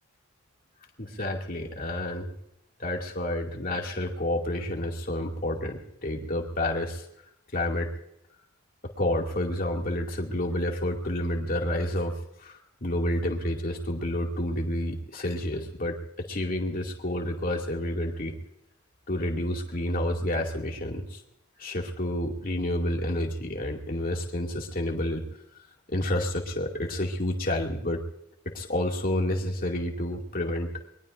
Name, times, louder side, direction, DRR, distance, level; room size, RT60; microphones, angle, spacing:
voice 1, 1.0-2.3 2.8-7.1 7.5-7.9 9.0-18.3 19.1-21.2 21.6-25.2 25.9-28.0 28.5-30.7, left 1 dB, 40° left, 0 dB, 2.4 m, -29 dB
24.0 x 22.0 x 2.6 m, 0.78 s
head